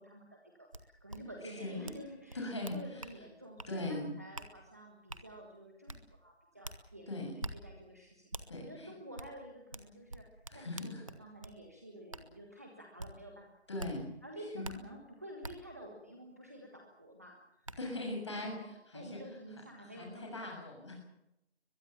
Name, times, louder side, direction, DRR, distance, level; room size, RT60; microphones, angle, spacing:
voice 1, 0.0-10.2 10.5-13.9 14.2-18.7 18.9-20.5, right 1 dB, 15° right, 1 dB, 1.5 m, -50 dB
sound 1, 0.7-0.8 1.1-1.2 1.8-2.0 2.3-3.2 3.6-3.7 4.3-4.5 5.1-5.2 5.9-6.0 6.6-6.8 7.4-7.5 8.3-8.5 9.2-9.3 9.7-11.6 12.1-12.2 13.0-13.1 13.8-13.9 14.6-14.7 15.4-15.5 17.0-17.1 17.6-17.8, right 2 dB, 30° right, 1.5 m, -44 dB
voice 2, 1.4-1.8 2.3-3.0 3.7-4.1 7.1-7.4 8.5-8.9 10.5-11.0 13.7-14.0 14.5-14.7 17.8-19.2 19.8-21.0, left 2 dB, 25° left, 1 dB, 7.0 m, -40 dB
22.5 x 21.5 x 7.2 m, 0.83 s
figure-of-eight pair, 180°, 33 cm